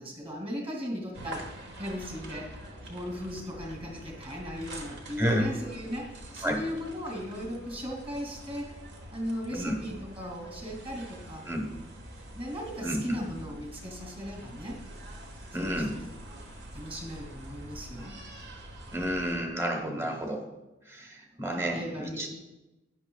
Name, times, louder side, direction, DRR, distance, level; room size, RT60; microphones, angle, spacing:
voice 1, 0.0-2.6 2.9-8.8 9.1-11.4 12.3-14.8 15.5-16.0 16.3-16.4 16.7-18.2 19.8-20.2 21.6-22.3, equal, 30° right, 0 dB, 2.7 m, -37 dB
sound 1, 1.1-19.4, right 1 dB, 60° right, 1.6 m, -45 dB
voice 2, 5.2-5.5 6.4-6.6 9.5-9.7 11.5-11.7 12.8-13.2 15.5-16.0 18.9-20.4 20.9-22.3, equal, 15° right, 3 dB, 1.2 m, -30 dB
12.5 x 10.0 x 2.4 m, 1.0 s
head